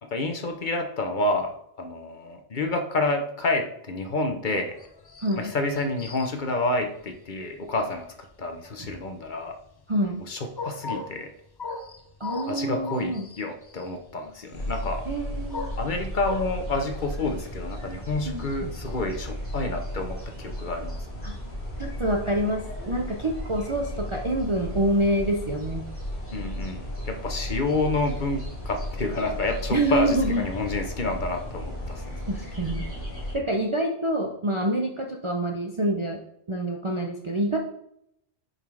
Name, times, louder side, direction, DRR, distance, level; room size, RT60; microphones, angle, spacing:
voice 1, 0.0-4.7 5.4-8.1 8.4-9.6 10.3-11.3 12.5-15.1 15.8-21.2 26.3-32.2, left 2 dB, 50° left, 5 dB, 1.0 m, -29 dB
sound 1, 4.7-20.3, left 4 dB, 30° left, 0.4 m, -40 dB
voice 2, 5.2-5.5 8.8-8.9 9.9-10.3 12.2-13.3 15.1-15.7 18.3-18.7 21.2-21.4 21.8-25.9 29.7-30.5 32.3-32.9 33.3-36.2 36.5-37.6, right 1 dB, 35° right, 0 dB, 0.6 m, -26 dB
sound 2, 14.5-33.3, equal, 10° left, 3.1 m, -35 dB
7.2 x 4.1 x 4.7 m, 0.76 s
omnidirectional pair, 1.1 m